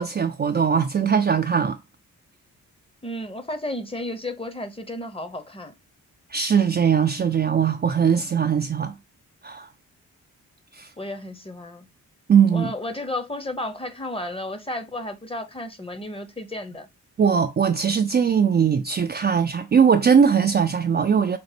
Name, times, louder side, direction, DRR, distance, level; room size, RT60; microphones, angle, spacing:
voice 1, 0.0-1.8 6.3-8.9 9.4-9.7 10.8-10.9 12.3-12.7 17.2-21.4, right 7 dB, 30° right, 0.4 m, -20 dB
voice 2, 3.0-5.7 11.0-11.9 12.5-16.9, left 1 dB, 15° left, 0.8 m, -33 dB
5.0 x 2.0 x 3.3 m
supercardioid pair, 45°, 35 cm